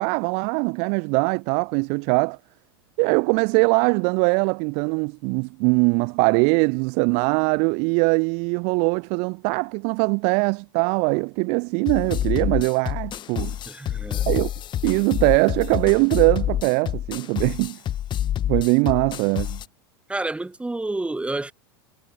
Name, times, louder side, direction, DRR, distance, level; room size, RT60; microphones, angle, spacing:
voice 1, 0.0-2.4 3.0-13.6 14.3-14.5 14.8-17.8 18.5-19.6, right 36 dB, 55° right, 0.8 m, -21 dB
sound 1, 11.9-19.7, left 11 dB, 35° left, 1.4 m, -27 dB
voice 2, 13.7-14.3 20.1-21.5, right 2 dB, 10° right, 4.1 m, -29 dB
hypercardioid pair, 95°, 13 cm